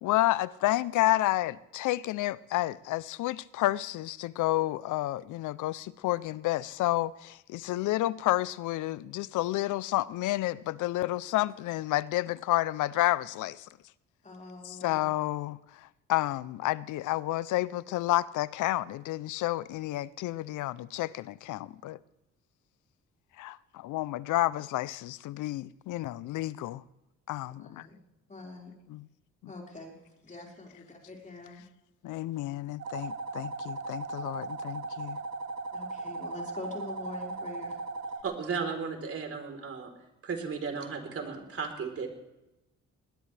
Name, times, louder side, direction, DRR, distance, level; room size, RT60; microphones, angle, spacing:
voice 1, 0.0-13.7 14.6-22.0 23.4-26.8 27.3-27.9 28.9-29.1 29.4-29.5 32.0-35.2, left 16 dB, 85° left, 0.6 m, -30 dB
voice 2, 14.2-15.1 27.6-28.0 28.3-28.7 29.5-29.9 30.2-31.6 35.7-37.7, left 2 dB, 25° left, 4.9 m, -44 dB
sound 1, 32.8-38.2, right 3 dB, 70° right, 1.8 m, -37 dB
voice 3, 38.2-39.9 40.2-42.1, right 5 dB, 50° right, 3.9 m, -35 dB
20.0 x 19.5 x 3.4 m
cardioid pair, 90°, 30 cm